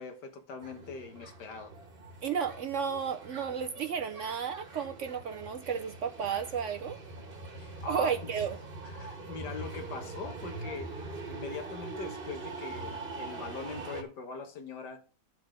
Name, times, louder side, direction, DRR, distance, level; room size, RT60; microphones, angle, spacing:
voice 1, 0.0-1.7 7.5-8.1 8.8-15.0, left 4 dB, 90° left, 1.9 m, -42 dB
sound 1, 0.6-14.0, right 3 dB, 35° right, 1.5 m, -43 dB
voice 2, 2.2-7.0 7.9-8.6, right 7 dB, 65° right, 0.8 m, -33 dB
10.5 x 4.0 x 6.4 m
omnidirectional pair, 1.8 m